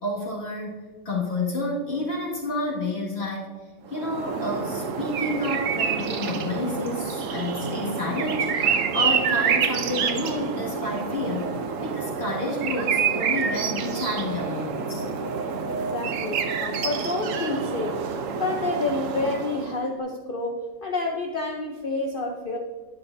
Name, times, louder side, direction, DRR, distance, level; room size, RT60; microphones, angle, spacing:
voice 1, 0.0-3.5 3.9-15.1, left 2 dB, 40° left, -4 dB, 2.1 m, -30 dB
sound 1, 3.9-19.8, right 6 dB, 60° right, 0.9 m, -27 dB
voice 2, 15.7-18.1 18.4-22.6, left 2 dB, 65° left, 2 dB, 0.5 m, -29 dB
10.5 x 10.0 x 2.6 m, 1.4 s
omnidirectional pair, 1.9 m